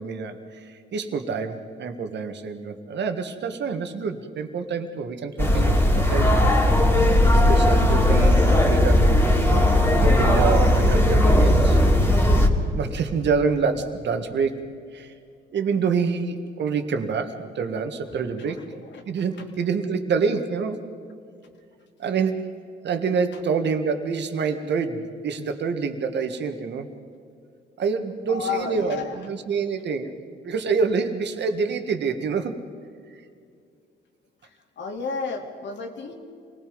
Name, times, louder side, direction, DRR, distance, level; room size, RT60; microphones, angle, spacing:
voice 1, 0.0-6.4 7.3-9.7 10.0-11.8 12.2-12.4 12.7-15.1 15.5-18.7 19.1-20.8 22.0-22.5 22.8-26.9 27.8-30.2 30.4-32.5, right 5 dB, 60° right, 7 dB, 1.8 m, -27 dB
sound 1, 5.4-12.5, left 1 dB, 10° left, 3.0 m, -17 dB
voice 2, 28.3-29.2 34.8-36.1, left 5 dB, 65° left, 3 dB, 3.0 m, -31 dB
27.5 x 19.0 x 5.3 m, 2.3 s
cardioid pair, 90°, 20 cm